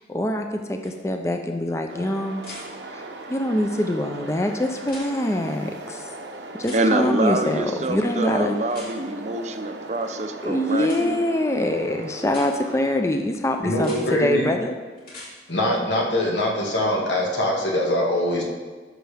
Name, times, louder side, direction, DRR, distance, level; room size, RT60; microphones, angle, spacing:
voice 1, 0.0-2.6 2.9-3.0 3.3-6.1 6.6-8.5 10.4-14.7, left 1 dB, 15° left, 4 dB, 0.4 m, -24 dB
sound 1, 0.8-0.9 2.4-2.6 4.8-5.1 6.6-6.8 8.7-8.9 10.8-11.0 12.2-12.5 13.7-14.0 15.0-15.3 17.3-17.4, left 2 dB, 50° left, 2.9 m, -41 dB
sound 2, 1.9-13.0, right 2 dB, 85° right, 0.8 m, -39 dB
voice 2, 6.7-11.2, right 2 dB, 40° right, 7 dB, 0.5 m, -26 dB
voice 3, 13.6-14.5 15.5-18.4, left 1 dB, 85° left, -1 dB, 1.8 m, -23 dB
13.5 x 6.4 x 3.4 m, 1.4 s
head